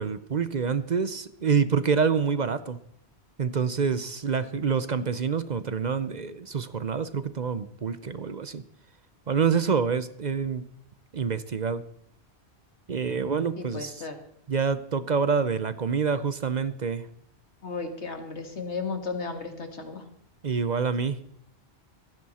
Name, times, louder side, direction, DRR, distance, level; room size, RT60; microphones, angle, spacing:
voice 1, 0.0-2.8 3.4-8.6 9.3-10.6 11.1-11.8 12.9-14.0 14.5-17.1 20.4-21.2, right 6 dB, 45° right, 13 dB, 0.7 m, -27 dB
voice 2, 13.6-14.2 17.6-20.0, left 4 dB, 85° left, 6 dB, 2.2 m, -34 dB
17.0 x 15.5 x 4.2 m, 0.70 s
omnidirectional pair, 1.1 m